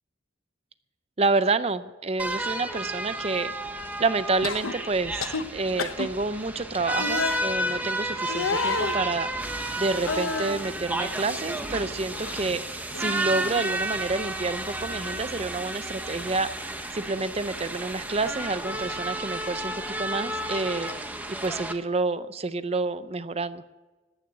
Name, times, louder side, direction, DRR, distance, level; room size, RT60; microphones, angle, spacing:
voice 1, 1.2-3.5 4.0-9.3 9.8-16.5 16.9-20.9 21.4-23.6, right 3 dB, 30° right, 13 dB, 0.5 m, -28 dB
sound 1, 2.2-21.7, right 1 dB, 10° right, 0.9 m, -32 dB
sound 2, 4.4-4.7 5.2-5.4 5.8-6.1 7.0-7.4 8.3-9.0 10.0-10.6 11.1-12.0 12.2-12.5 12.9-13.7 15.0-15.2, left 4 dB, 90° left, 0.9 m, -31 dB
14.0 x 9.4 x 8.0 m, 1.2 s
head